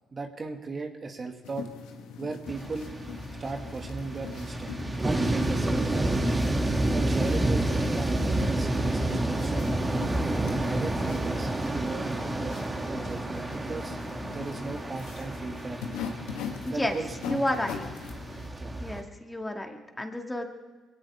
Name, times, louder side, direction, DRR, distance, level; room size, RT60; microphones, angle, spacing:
voice 1, 0.1-1.7 2.2-2.9 3.4-4.8 5.0-6.2 6.9-9.7 10.4-14.0 14.3-16.0 16.7-17.4 18.5-18.8, right 3 dB, 40° right, 4 dB, 1.9 m, -37 dB
sound 1, 1.4-18.5, left 6 dB, 80° left, 1.8 m, -41 dB
sound 2, 2.5-19.0, right 2 dB, 20° right, 2.5 m, -29 dB
voice 2, 16.6-17.0 17.3-17.9 18.8-20.4, left 1 dB, 15° left, 3 dB, 2.3 m, -31 dB
23.0 x 17.0 x 3.6 m, 1.3 s
hypercardioid pair, 55°, 0 cm